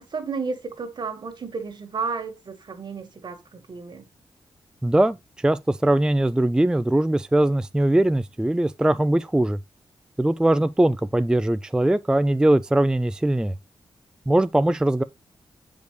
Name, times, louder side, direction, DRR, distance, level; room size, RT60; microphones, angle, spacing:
voice 1, 0.0-4.1, right 4 dB, 55° right, 1.7 m, -32 dB
voice 2, 4.8-9.6 10.2-13.5 14.3-15.0, right 1 dB, 10° right, 0.3 m, -21 dB
7.9 x 5.2 x 3.2 m
cardioid pair, 95°, 9 cm